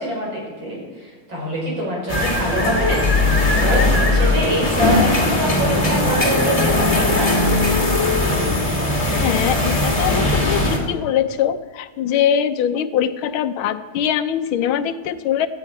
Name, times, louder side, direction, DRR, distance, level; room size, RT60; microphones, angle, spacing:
voice 1, 0.0-7.4, equal, 65° right, -3 dB, 5.8 m, -25 dB
sound 1, 2.1-10.8, left 2 dB, 15° left, 2.1 m, -19 dB
voice 2, 9.2-15.5, left 9 dB, 85° left, 11 dB, 1.6 m, -22 dB
17.0 x 13.0 x 4.7 m, 1.3 s
omnidirectional pair, 2.2 m